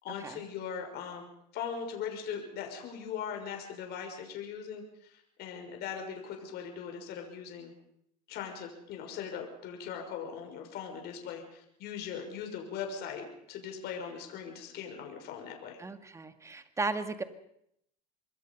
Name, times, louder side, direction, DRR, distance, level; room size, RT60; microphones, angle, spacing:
voice 1, 0.0-1.2 1.5-7.7 8.3-15.8, left 7 dB, 55° left, 3 dB, 6.1 m, -40 dB
voice 2, 15.8-17.2, right 3 dB, 15° right, 9 dB, 2.1 m, -35 dB
26.0 x 22.0 x 5.5 m, 0.73 s
supercardioid pair, 110°, 21 cm